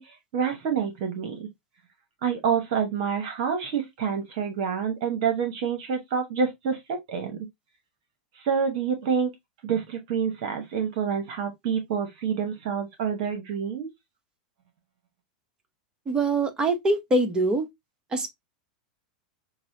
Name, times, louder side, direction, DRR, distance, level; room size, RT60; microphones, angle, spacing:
voice 1, 0.0-1.5 2.2-7.5 8.4-9.3 9.6-13.9, right 7 dB, 60° right, 1.0 m, -27 dB
voice 2, 16.1-17.7 18.1-18.3, right 2 dB, 20° right, 1.0 m, -24 dB
5.9 x 2.1 x 2.6 m
hypercardioid pair, 100°, 4 cm